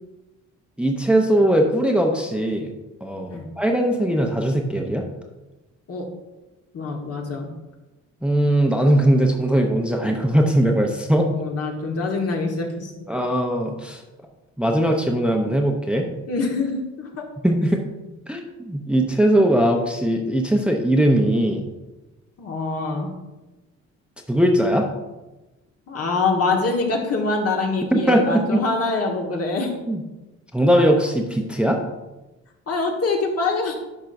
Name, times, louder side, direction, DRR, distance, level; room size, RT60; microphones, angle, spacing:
voice 1, 0.8-2.7 3.0-5.0 8.2-11.3 13.1-14.0 14.6-16.1 17.4-17.8 18.3-21.7 24.3-24.9 27.9-28.6 29.9-30.0 30.5-31.8, right 1 dB, 5° right, 2 dB, 0.7 m, -20 dB
voice 2, 6.7-7.5 11.3-12.9 16.3-17.2 22.4-23.1 25.9-29.7 32.7-33.8, left 3 dB, 55° left, 0 dB, 1.5 m, -24 dB
10.5 x 5.4 x 2.6 m, 1.1 s
cardioid pair, 90°, 30 cm